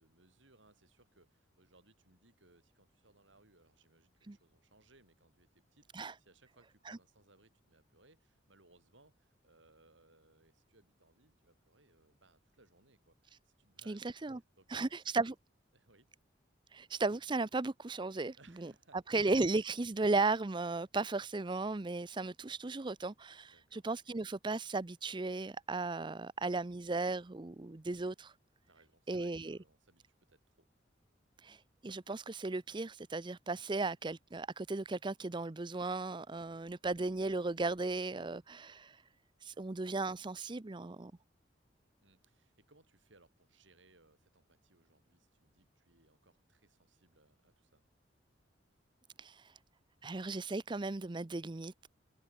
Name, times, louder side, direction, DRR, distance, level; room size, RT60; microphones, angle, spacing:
voice 1, 0.0-15.1 15.7-16.1 18.4-19.2 23.5-23.9 28.7-30.7 39.6-39.7 42.0-47.8, right 2 dB, 80° right, 7.6 m, -67 dB
voice 2, 13.9-14.4 14.7-15.3 16.7-18.7 19.1-28.3 29.1-29.6 31.4-39.0 39.4-41.1 49.2-49.5 50.0-51.9, right 3 dB, 25° right, 0.6 m, -36 dB
head